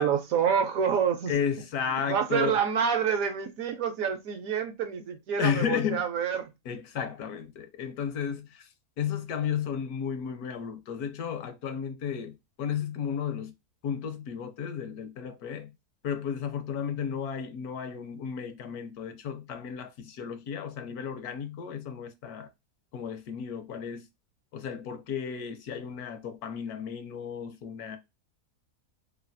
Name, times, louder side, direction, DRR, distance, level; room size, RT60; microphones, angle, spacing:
voice 1, 0.0-1.3 2.1-6.5, right 7 dB, 70° right, 0.9 m, -27 dB
voice 2, 1.3-2.6 5.4-6.0 6.6-8.7 9.0-13.5 13.8-15.7 16.0-22.5 22.9-24.1 24.5-28.0, left 7 dB, 75° left, 1.1 m, -33 dB
3.1 x 2.3 x 2.5 m
omnidirectional pair, 1.7 m